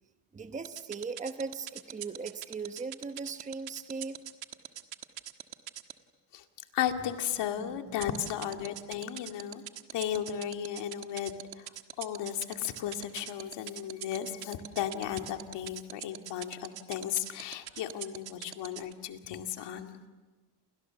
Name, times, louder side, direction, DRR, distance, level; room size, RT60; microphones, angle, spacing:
voice 1, 0.3-4.2 7.6-8.0, right 4 dB, 15° right, 8 dB, 1.0 m, -39 dB
sound 1, 0.6-5.9 8.0-18.9, right 12 dB, 55° right, 1.6 m, -41 dB
voice 2, 6.7-9.6 9.9-11.7 12.0-20.0, left 10 dB, 70° left, 5 dB, 2.4 m, -35 dB
29.5 x 28.5 x 7.1 m, 1.3 s
cardioid pair, 135°, 44 cm